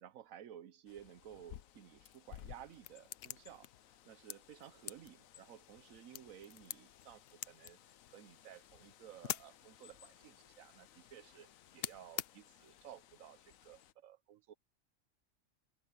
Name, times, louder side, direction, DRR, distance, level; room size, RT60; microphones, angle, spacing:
voice 1, 0.0-3.7 4.0-7.8 8.1-14.5, right 10 dB, 85° right, 1.2 m, -55 dB
Bird, 0.9-13.9, left 11 dB, 85° left, 1.1 m, -59 dB
sound 1, 2.2-12.8, left 12 dB, 65° left, 0.6 m, -49 dB
omnidirectional pair, 1.4 m